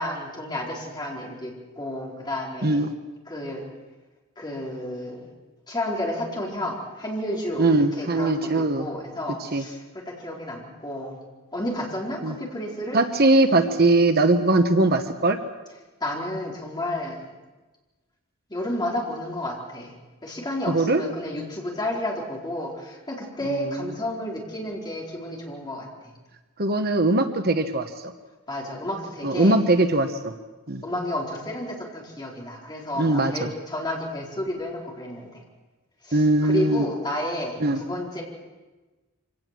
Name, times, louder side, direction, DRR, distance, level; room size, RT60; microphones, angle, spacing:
voice 1, 0.0-2.8 3.3-3.7 4.4-5.3 5.7-7.7 7.9-11.2 11.5-13.0 16.0-17.3 18.5-19.9 20.2-26.1 28.5-29.6 30.8-35.4 36.0-38.2, left 1 dB, 20° left, -2 dB, 4.4 m, -31 dB
voice 2, 7.6-8.9 9.5-9.6 12.2-12.3 12.9-15.4 20.7-21.0 23.4-23.9 26.6-27.9 29.2-30.3 30.7-30.8 33.0-33.5 36.1-36.9 37.6-37.8, right 2 dB, 50° right, 7 dB, 1.2 m, -21 dB
25.0 x 17.5 x 7.6 m, 1.2 s
head